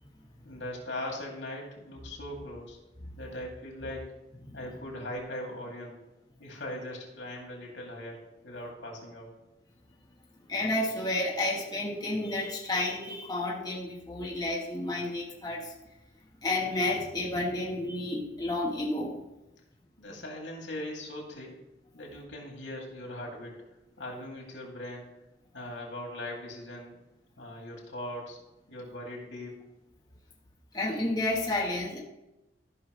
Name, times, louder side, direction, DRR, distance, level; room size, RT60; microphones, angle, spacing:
voice 1, 0.4-2.8 3.2-4.1 4.5-6.0 6.4-9.3 20.0-21.6 21.9-23.6 24.0-25.1 25.5-27.0 27.4-28.4 28.7-29.6, left 1 dB, 85° left, -1 dB, 2.6 m, -40 dB
voice 2, 10.5-15.7 16.4-19.2 30.7-32.0, left 2 dB, 20° left, -3 dB, 1.3 m, -31 dB
14.0 x 5.8 x 3.2 m, 0.94 s
head